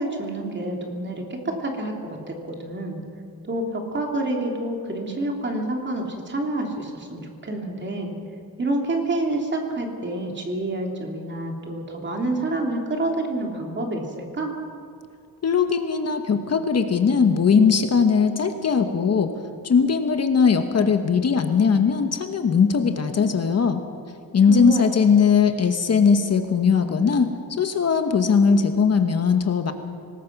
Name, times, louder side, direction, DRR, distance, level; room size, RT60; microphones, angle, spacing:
voice 1, 0.0-3.0 3.4-8.1 8.6-14.5 24.5-24.9, right 2 dB, 30° right, 1 dB, 2.9 m, -28 dB
voice 2, 15.4-19.3 19.6-23.8 24.3-29.7, left 6 dB, 45° left, 7 dB, 1.2 m, -19 dB
24.5 x 19.5 x 6.0 m, 2.4 s
wide cardioid pair, 175°, 37 cm